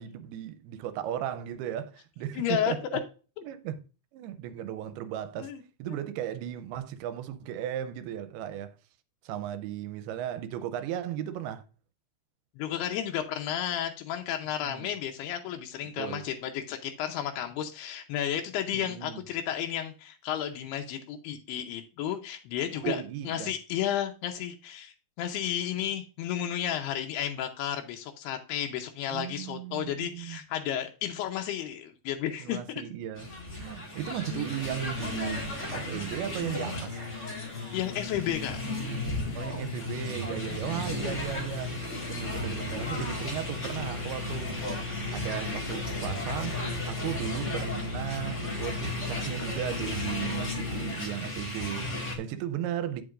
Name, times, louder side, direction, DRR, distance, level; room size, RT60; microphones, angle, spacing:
voice 1, 0.0-2.8 3.4-3.8 4.1-5.5 5.8-8.8 9.2-11.6 14.6-14.9 16.0-16.3 18.7-19.2 22.8-23.5 29.1-30.4 32.4-37.0 39.3-41.7 42.1-53.0, right 11 dB, 85° right, 2.6 m, -36 dB
voice 2, 2.3-2.7 5.4-5.6 12.6-32.8 37.7-38.6 40.7-41.1, left 10 dB, 85° left, 2.8 m, -32 dB
sound 1, 33.1-52.1, left 1 dB, 65° left, 0.7 m, -35 dB
sound 2, 36.2-51.0, left 4 dB, 25° left, 1.7 m, -39 dB
8.8 x 7.6 x 2.5 m
omnidirectional pair, 4.6 m